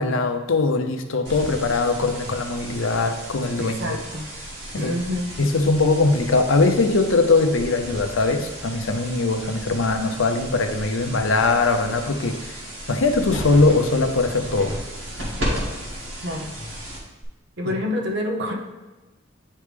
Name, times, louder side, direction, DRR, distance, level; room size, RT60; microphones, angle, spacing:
voice 1, 0.0-4.0 4.7-4.9 5.4-12.6 12.9-14.8 17.6-17.7, left 3 dB, 80° left, 7 dB, 0.6 m, -21 dB
sound 1, 1.2-17.2, equal, 80° right, 1.8 m, -34 dB
voice 2, 3.6-4.3 4.7-5.3 16.2-16.5 17.6-18.5, left 1 dB, 55° right, 1 dB, 0.9 m, -27 dB
9.1 x 3.3 x 3.4 m, 1.1 s
head